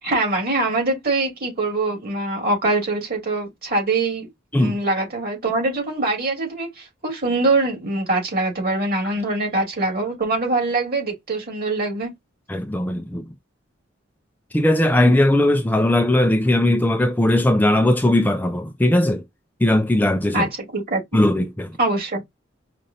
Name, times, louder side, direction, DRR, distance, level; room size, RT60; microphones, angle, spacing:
voice 1, 0.0-4.3 4.6-12.1 20.3-21.0 21.8-22.2, right 2 dB, 50° right, 2.7 m, -23 dB
voice 2, 12.5-13.3 14.5-19.2 19.6-20.5 21.1-21.8, left 1 dB, 10° left, 0.3 m, -18 dB
5.1 x 2.4 x 2.7 m
head